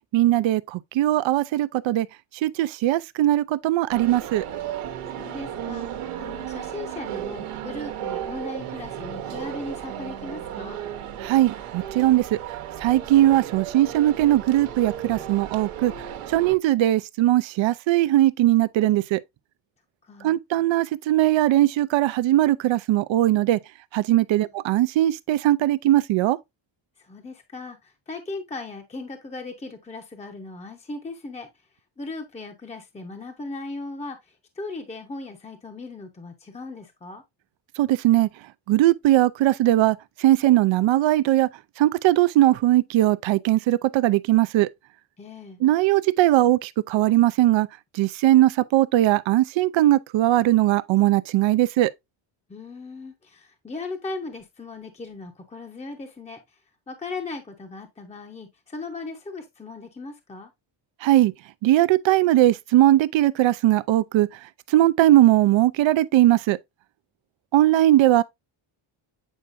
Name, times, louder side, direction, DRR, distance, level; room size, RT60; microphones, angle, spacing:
voice 1, 0.1-2.1 2.4-4.4 11.2-12.4 12.8-15.9 16.3-19.2 20.2-23.6 23.9-26.4 37.8-38.3 38.7-41.5 41.8-44.7 45.6-47.7 47.9-51.9 61.0-61.3 61.6-64.3 64.7-66.6 67.5-68.2, right 14 dB, 65° right, 0.6 m, -19 dB
sound 1, 3.9-16.6, right 10 dB, 85° right, 1.2 m, -34 dB
voice 2, 5.1-10.8 20.0-20.4 24.4-24.5 27.0-31.5 32.0-37.2 45.2-45.6 52.5-56.6 56.9-60.5, left 3 dB, 15° left, 0.8 m, -37 dB
8.2 x 4.5 x 2.5 m
cardioid pair, 140°, 49 cm